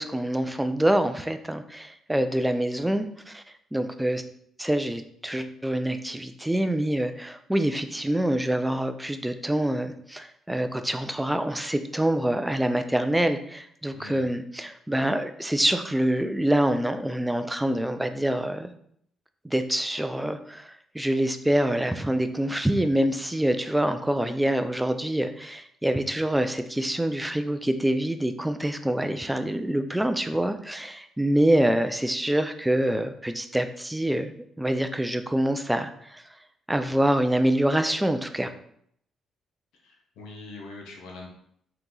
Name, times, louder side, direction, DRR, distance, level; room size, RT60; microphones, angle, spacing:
voice 1, 0.0-3.4 3.7-4.2 4.6-18.7 19.4-34.3 34.6-36.2 36.7-38.5, right 1 dB, 5° right, 8 dB, 0.4 m, -26 dB
voice 2, 13.9-14.3 39.8-41.3, left 3 dB, 90° left, 0 dB, 0.9 m, -43 dB
4.0 x 2.8 x 3.8 m, 0.68 s
cardioid pair, 90°, 0 cm